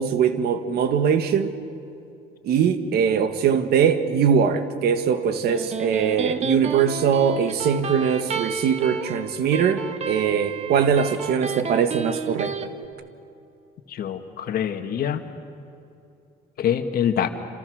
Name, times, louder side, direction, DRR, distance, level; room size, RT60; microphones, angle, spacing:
voice 1, 0.0-1.5 2.4-12.5, right 7 dB, 70° right, 10 dB, 1.7 m, -21 dB
Electric guitar, 5.3-12.7, right 5 dB, 40° right, 1.4 m, -31 dB
voice 2, 13.9-15.2 16.6-17.3, left 9 dB, 60° left, 7 dB, 1.9 m, -25 dB
28.0 x 26.5 x 6.5 m, 2.6 s
cardioid pair, 110°, 17 cm